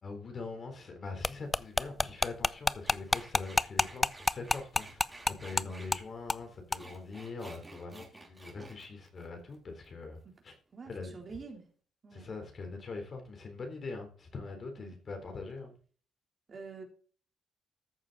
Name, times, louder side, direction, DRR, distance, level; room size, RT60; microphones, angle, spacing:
voice 1, 0.0-5.0 5.3-10.2 10.4-10.6 10.9-11.2 12.1-15.8, left 3 dB, 45° left, 4 dB, 3.7 m, -43 dB
sound 1, 1.2-5.6 5.9-6.0 6.3-6.4 6.7-6.8, left 2 dB, 20° left, 0.4 m, -28 dB
sound 2, 2.8-5.9 6.5-9.9 10.2-10.6, right 2 dB, 20° right, 3.3 m, -52 dB
voice 2, 10.7-11.7 12.0-12.3 14.8-14.9 16.5-16.8, right 5 dB, 40° right, 2 dB, 3.5 m, -46 dB
14.0 x 6.8 x 4.1 m, 0.42 s
cardioid pair, 90°, 0 cm